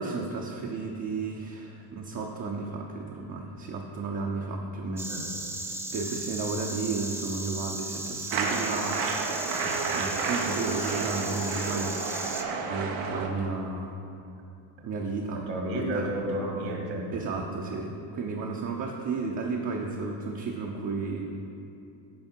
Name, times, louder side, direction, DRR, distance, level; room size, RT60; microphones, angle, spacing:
voice 1, 0.0-5.1 5.7-9.0 9.9-12.0 12.7-14.0 14.8-15.5 15.8-16.1 17.1-21.3, right 4 dB, 40° right, -1 dB, 0.8 m, -33 dB
Insect, 5.0-12.4, right 2 dB, 5° right, 0.3 m, -36 dB
sound 1, 8.3-13.3, right 4 dB, 80° right, 1.0 m, -31 dB
voice 2, 9.5-9.9 14.8-14.9 15.5-17.0, right 1 dB, 65° right, 0 dB, 1.9 m, -32 dB
9.4 x 5.0 x 4.5 m, 2.7 s
supercardioid pair, 105°, 49 cm